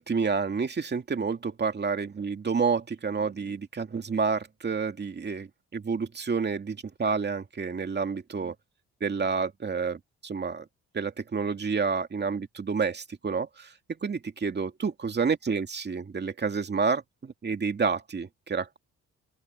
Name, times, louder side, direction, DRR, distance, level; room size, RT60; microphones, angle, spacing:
voice 1, 0.0-8.5 9.0-10.6 10.9-13.7 14.0-18.8, right 5 dB, 35° right, 2.4 m, -29 dB
open air
cardioid pair, 90°, 30 cm